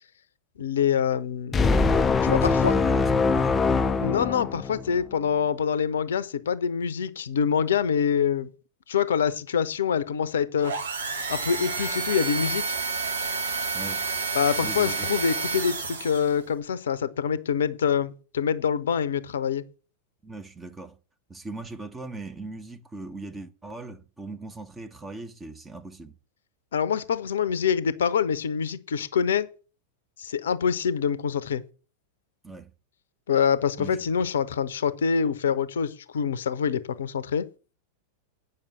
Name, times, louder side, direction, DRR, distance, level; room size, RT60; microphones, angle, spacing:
voice 1, 0.6-1.7 2.2-2.7 4.0-8.5 8.9-10.8 11.3-12.7 14.3-19.7 26.7-29.5 30.2-31.6 33.3-37.5, left 7 dB, 65° left, 0.7 m, -25 dB
sound 1, 1.5-5.0, left 4 dB, 20° left, 0.5 m, -22 dB
voice 2, 2.2-3.7 13.7-14.1 14.6-15.2 20.2-21.0 21.3-26.1 32.4-32.7 33.8-34.1, right 3 dB, 10° right, 1.1 m, -40 dB
sound 2, 10.6-16.4, right 4 dB, 65° right, 1.2 m, -30 dB
8.8 x 5.6 x 6.7 m
figure-of-eight pair, 90°, 0 cm